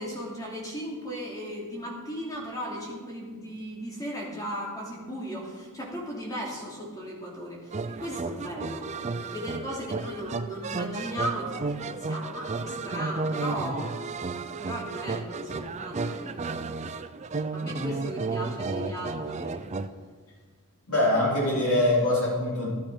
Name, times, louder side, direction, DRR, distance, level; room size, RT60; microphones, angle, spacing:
voice 1, 0.0-8.9 9.2-13.9 14.6-16.7 17.5-19.7, equal, 15° left, -3 dB, 3.0 m, -36 dB
sound 1, 7.7-19.9, right 3 dB, 30° right, 0.5 m, -33 dB
voice 2, 20.9-22.7, left 1 dB, 90° left, -6 dB, 4.6 m, -23 dB
13.0 x 12.0 x 5.1 m, 1.5 s
head